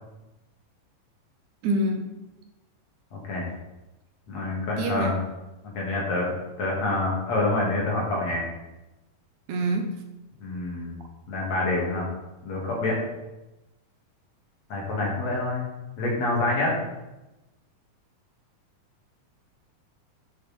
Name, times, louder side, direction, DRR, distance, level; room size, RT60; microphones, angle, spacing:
voice 1, 1.6-2.1 4.8-5.2 9.5-9.9, right 1 dB, 70° right, 4 dB, 2.3 m, -26 dB
voice 2, 3.1-3.5 4.3-5.2 5.6-8.4 10.4-11.0 11.3-12.1 12.4-13.0 14.7-15.6 16.0-16.7, left 2 dB, 55° left, -3 dB, 3.4 m, -27 dB
9.4 x 8.3 x 4.4 m, 1.0 s
omnidirectional pair, 3.8 m